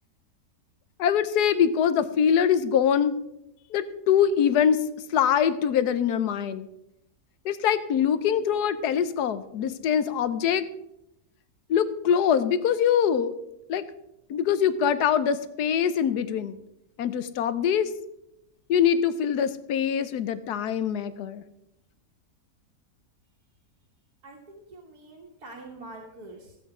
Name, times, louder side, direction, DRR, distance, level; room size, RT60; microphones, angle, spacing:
voice 1, 1.0-3.2 3.7-4.8 5.1-6.7 7.4-10.6 11.7-13.3 13.7-13.8 14.3-16.6 17.0-17.9 18.7-21.4, left 8 dB, 85° left, 13 dB, 1.3 m, -23 dB
voice 2, 24.2-26.6, right 2 dB, 75° right, -2 dB, 2.1 m, -45 dB
15.5 x 7.9 x 4.9 m, 0.85 s
omnidirectional pair, 1.7 m